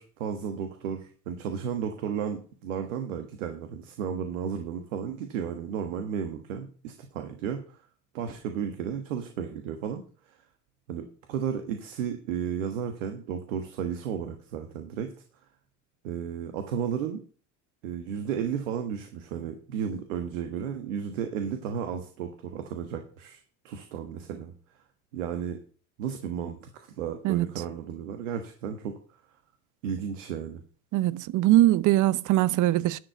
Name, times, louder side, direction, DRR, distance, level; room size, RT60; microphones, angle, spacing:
voice 1, 0.0-7.8 8.1-10.4 10.9-15.1 16.0-17.2 17.8-24.5 25.1-25.6 26.0-29.0 29.8-30.6, right 8 dB, 90° right, 1.4 m, -33 dB
voice 2, 30.9-33.0, right 15 dB, 55° right, 0.7 m, -22 dB
11.5 x 4.7 x 8.0 m
supercardioid pair, 85°, 37 cm